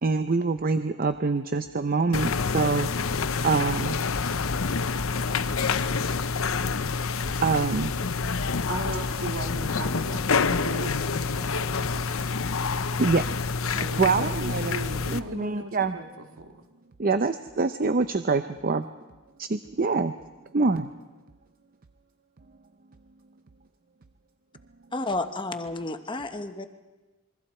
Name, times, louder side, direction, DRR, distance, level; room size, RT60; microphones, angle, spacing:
voice 1, 0.0-2.9 3.4-4.0 7.4-7.9 13.0-13.2 14.0-14.8 15.1-16.0 17.0-18.9 19.4-20.1 20.5-20.9, right 4 dB, 45° right, 9 dB, 0.6 m, -25 dB
sound 1, 2.1-15.2, left 4 dB, 75° left, 0.8 m, -27 dB
voice 2, 8.7-12.2 13.0-13.1 13.7-16.6, right 2 dB, 80° right, 4 dB, 2.1 m, -38 dB
voice 3, 24.9-26.7, left 2 dB, 25° left, 8 dB, 1.0 m, -31 dB
27.0 x 22.5 x 4.4 m, 1.2 s
head